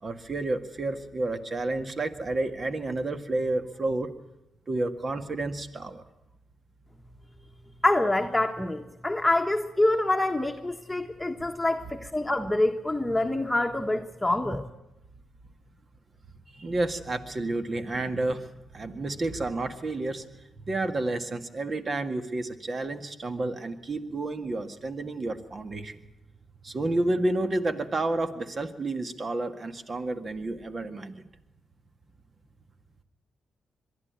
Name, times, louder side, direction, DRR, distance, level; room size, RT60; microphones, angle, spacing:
voice 1, 0.0-4.1 4.7-6.0 16.5-26.0 26.6-31.3, right 2 dB, 45° right, 8 dB, 1.9 m, -30 dB
voice 2, 7.8-14.7, left 2 dB, 10° left, 3 dB, 1.4 m, -26 dB
23.0 x 12.5 x 9.6 m, 0.93 s
supercardioid pair, 45°, 0 cm